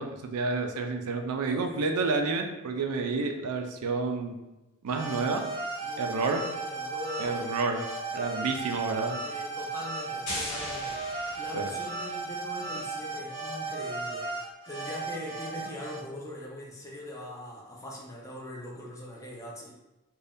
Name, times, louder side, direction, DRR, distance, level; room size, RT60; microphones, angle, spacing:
voice 1, 0.0-4.3 4.8-5.4 6.0-6.4 7.2-7.8 8.1-9.2 11.5-11.7, right 4 dB, 80° right, 5 dB, 0.4 m, -29 dB
voice 2, 1.5-1.9 5.8-7.5 9.2-11.0 11.4-19.7, left 1 dB, 15° left, -3 dB, 0.5 m, -41 dB
sound 1, 4.9-16.0, right 3 dB, 30° right, 0.6 m, -35 dB
sound 2, 10.3-12.1, left 1 dB, 60° left, 1.1 m, -38 dB
2.6 x 2.2 x 3.3 m, 1.0 s
head